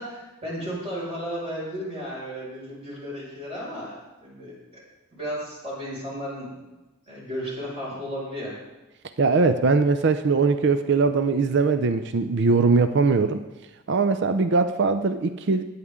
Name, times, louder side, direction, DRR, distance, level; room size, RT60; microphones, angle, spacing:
voice 1, 0.0-4.8 5.1-6.6 7.1-8.5, equal, 30° right, -6 dB, 5.7 m, -34 dB
voice 2, 9.2-13.4 13.9-15.6, right 4 dB, 60° right, 10 dB, 0.5 m, -21 dB
19.5 x 9.4 x 3.7 m, 1.1 s
head